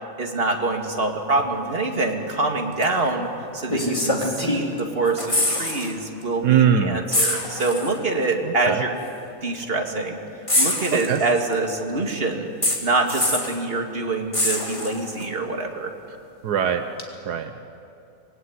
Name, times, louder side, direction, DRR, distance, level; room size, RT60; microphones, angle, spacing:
voice 1, 0.2-3.3 3.5-9.0 9.4-10.2 10.5-12.5 12.8-15.9, right 3 dB, 35° right, 2 dB, 2.5 m, -25 dB
sound 1, 2.8-3.0 3.7-4.8 5.1-5.9 6.2-6.4 7.1-8.0 9.0-9.1 10.5-11.5 12.6-13.6 14.3-15.2 17.0-17.1, left 1 dB, 20° left, 2.9 m, -24 dB
voice 2, 6.4-7.0 8.4-8.8 10.9-11.2 16.4-16.9 17.2-17.7, right 8 dB, 80° right, 8 dB, 1.5 m, -21 dB
25.5 x 20.5 x 9.6 m, 2.6 s
omnidirectional pair, 1.7 m